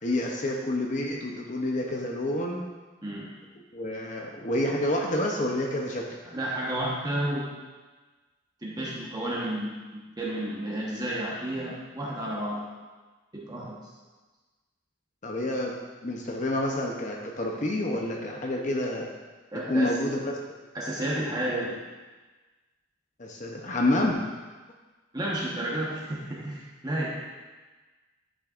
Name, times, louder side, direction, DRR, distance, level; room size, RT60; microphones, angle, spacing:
voice 1, 0.0-2.6 3.7-6.2 15.2-15.8 16.0-19.1 19.5-20.5 23.2-24.2, left 1 dB, 40° left, 0 dB, 0.7 m, -28 dB
voice 2, 3.0-3.3 6.2-7.5 8.6-12.6 13.3-13.8 19.5-19.9 20.7-21.8 25.1-27.1, right 1 dB, 20° right, -5 dB, 1.1 m, -31 dB
10.0 x 6.4 x 2.5 m, 1.3 s
head